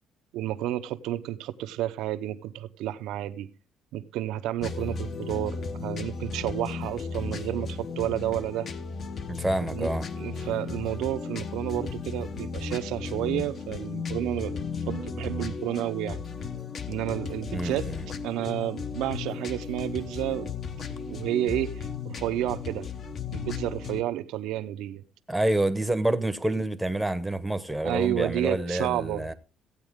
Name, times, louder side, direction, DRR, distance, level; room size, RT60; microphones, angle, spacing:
voice 1, 0.3-3.5 3.9-8.7 9.7-9.9 10.2-16.2 16.9-17.9 18.2-20.5 21.1-22.9 23.3-25.0 27.8-29.3, right 13 dB, 85° right, 0.7 m, -31 dB
sound 1, 4.6-24.0, left 5 dB, 40° left, 0.9 m, -35 dB
voice 2, 9.3-10.1 17.5-18.0 25.3-29.3, right 1 dB, 5° right, 0.9 m, -28 dB
15.5 x 8.9 x 3.6 m
cardioid pair, 140°, 0 cm